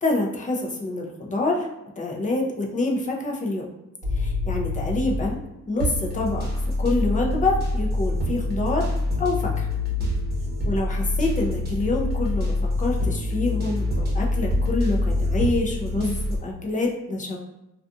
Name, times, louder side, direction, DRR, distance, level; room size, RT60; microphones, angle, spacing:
voice 1, 0.0-1.7 2.0-3.7 4.1-5.4 5.7-6.5 6.8-8.9 9.2-9.7 10.7-17.4, left 2 dB, 25° left, 0 dB, 0.6 m, -26 dB
sound 1, 4.0-5.4 5.8-16.4, left 1 dB, 30° right, 0.9 m, -25 dB
2.4 x 2.4 x 2.5 m, 0.89 s
cardioid pair, 95°, 31 cm